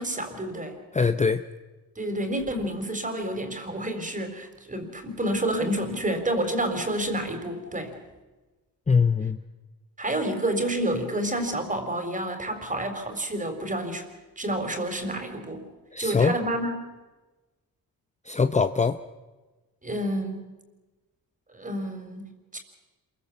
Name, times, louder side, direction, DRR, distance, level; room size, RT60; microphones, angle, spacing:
voice 1, 0.0-0.8 2.0-7.9 10.0-14.1 14.4-15.6 16.0-16.9 19.8-20.5 21.5-22.6, right 1 dB, 20° right, 6 dB, 4.1 m, -29 dB
voice 2, 0.9-1.4 8.9-9.4 15.9-16.3 18.3-19.0, left 5 dB, 20° left, 10 dB, 0.7 m, -22 dB
27.0 x 22.5 x 7.2 m, 1.2 s
cardioid pair, 100°, 36 cm